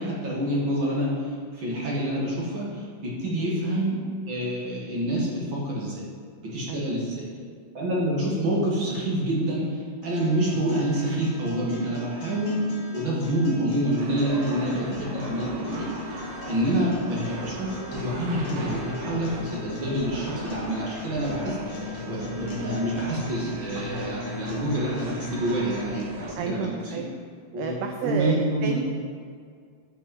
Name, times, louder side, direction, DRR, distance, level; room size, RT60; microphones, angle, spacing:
voice 1, 0.0-4.0 4.3-6.0 6.4-7.2 7.7-12.7 12.9-16.2 16.5-26.8 27.5-27.8 28.0-28.8, right 1 dB, 40° right, -5 dB, 2.1 m, -27 dB
voice 2, 3.3-3.6 6.7-7.0 26.4-27.2 27.6-28.8, right 6 dB, 80° right, 4 dB, 1.9 m, -31 dB
sound 1, 10.0-26.0, left 3 dB, 70° left, 3.3 m, -39 dB
sound 2, 14.0-26.3, right 1 dB, 60° right, 2.1 m, -38 dB
11.0 x 7.2 x 4.4 m, 2.1 s
omnidirectional pair, 4.2 m